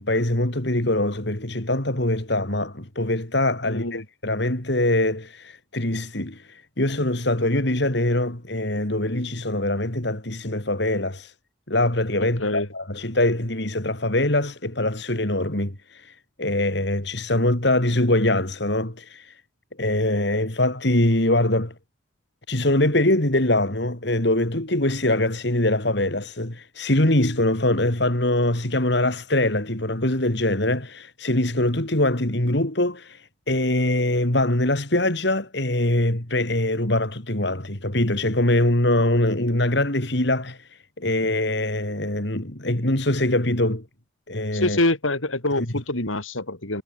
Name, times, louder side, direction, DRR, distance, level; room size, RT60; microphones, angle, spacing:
voice 1, 0.0-11.3 11.7-19.4 19.8-21.7 22.5-43.8 44.3-44.8 45.6-45.7, left 1 dB, 60° left, 3.0 m, -23 dB
voice 2, 3.6-4.0 12.4-12.7 44.5-46.8, left 2 dB, 85° left, 5.1 m, -25 dB
head